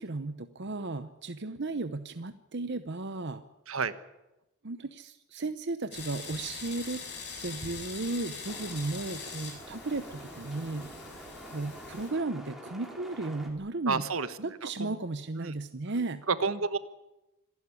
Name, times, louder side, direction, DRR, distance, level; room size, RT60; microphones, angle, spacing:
voice 1, 0.0-3.4 4.6-7.0 7.4-10.9 11.4-14.1 14.4-16.2, right 2 dB, 55° right, 10 dB, 0.9 m, -35 dB
sound 1, 5.9-12.1, left 4 dB, 50° left, 6.4 m, -43 dB
sound 2, 8.4-13.5, equal, ahead, 3.3 m, -48 dB
voice 2, 13.9-14.3 14.6-14.9 15.4-15.5 16.3-16.8, right 4 dB, 75° right, 13 dB, 1.3 m, -29 dB
26.0 x 12.0 x 9.8 m, 0.96 s
head